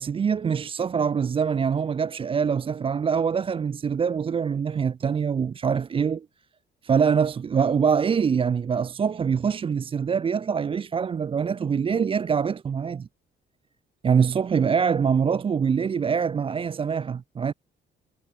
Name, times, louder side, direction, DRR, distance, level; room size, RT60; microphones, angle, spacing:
voice 1, 0.0-6.3 6.8-13.1 14.0-17.5, right 6 dB, 25° right, 0.4 m, -24 dB
cardioid pair, 90°, 20 cm